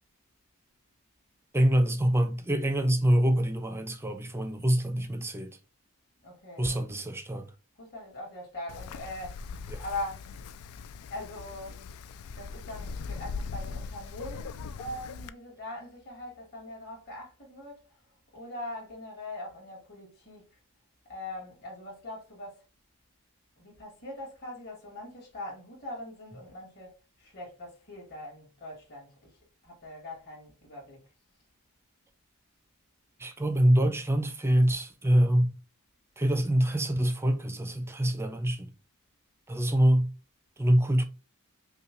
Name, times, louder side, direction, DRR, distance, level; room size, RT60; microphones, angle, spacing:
voice 1, 1.5-5.6 6.6-7.5 9.7-9.8 33.2-35.5 36.2-38.7 39.5-40.1 40.6-41.0, right 1 dB, 10° right, 0.5 m, -25 dB
voice 2, 6.2-6.8 7.8-9.4 9.8-10.2 11.1-11.8 12.3-17.8 18.3-20.6 21.1-22.6 23.6-26.9 27.2-29.4 29.6-31.0, left 1 dB, 45° left, 2.3 m, -41 dB
Wind, 8.7-15.3, left 5 dB, 70° left, 0.3 m, -40 dB
5.6 x 2.3 x 3.0 m
head